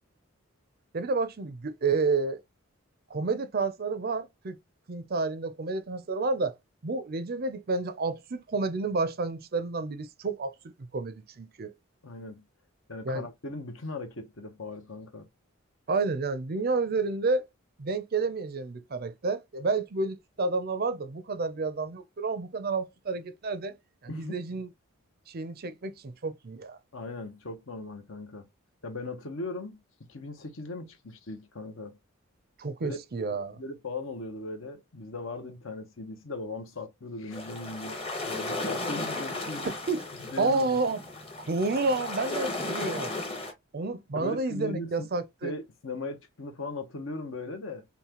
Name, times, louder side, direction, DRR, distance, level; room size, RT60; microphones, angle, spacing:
voice 1, 0.9-2.4 3.1-4.6 4.9-6.5 6.8-11.7 13.1-13.3 15.9-17.4 17.8-23.8 24.0-24.7 25.3-26.8 32.6-33.6 39.6-40.1 40.4-41.0 41.5-43.1 43.7-45.5, right 3 dB, 45° right, 0.5 m, -30 dB
voice 2, 12.0-12.4 12.9-15.3 24.1-24.4 26.9-28.5 28.8-29.8 30.1-32.0 32.8-33.0 33.5-39.7 40.3-40.8 44.1-45.1 45.4-47.8, left 2 dB, 60° left, 0.9 m, -38 dB
sound 1, 37.3-43.5, left 2 dB, 25° left, 1.1 m, -35 dB
5.6 x 2.2 x 2.9 m
head